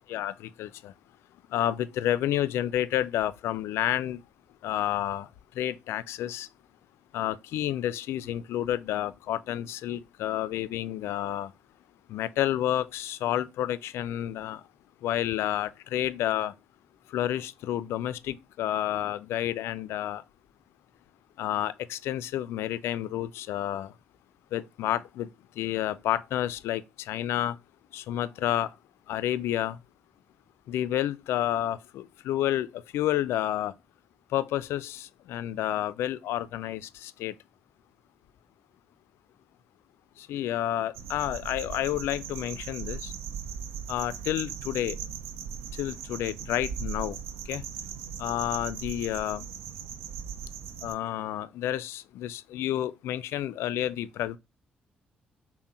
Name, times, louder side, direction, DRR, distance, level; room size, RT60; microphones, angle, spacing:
voice 1, 0.1-0.9 1.5-4.2 4.6-5.3 5.6-6.5 7.1-11.5 12.1-14.6 15.0-16.5 17.1-20.2 21.4-23.9 24.5-27.6 27.9-28.7 29.1-29.8 30.7-33.7 34.3-37.3 40.2-43.1 43.9-45.0 45.8-47.2 47.5-47.6 48.2-49.5 50.8-54.4, left 12 dB, 75° left, 0.3 m, -30 dB
sound 1, 40.9-50.9, right 7 dB, 80° right, 0.4 m, -38 dB
5.8 x 2.1 x 4.2 m
hypercardioid pair, 45°, 4 cm